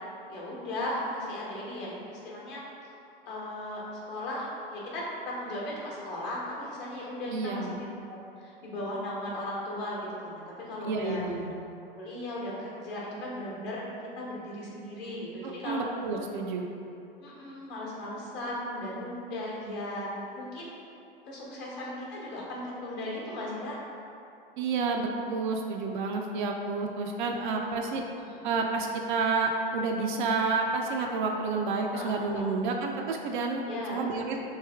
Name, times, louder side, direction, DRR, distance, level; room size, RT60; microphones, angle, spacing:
voice 1, 0.3-2.6 3.3-7.9 8.4-11.2 11.9-13.8 14.2-15.8 17.2-20.1 20.3-20.8 21.2-23.8 28.3-28.4 31.9-32.5 33.7-34.0, left 1 dB, 40° left, -5 dB, 1.0 m, -37 dB
voice 2, 7.3-7.8 10.8-11.6 15.6-16.7 24.6-28.0 28.4-33.6 33.9-34.4, right 4 dB, 55° right, 1 dB, 0.4 m, -30 dB
3.2 x 2.6 x 3.4 m, 2.7 s
figure-of-eight pair, 90°, 29 cm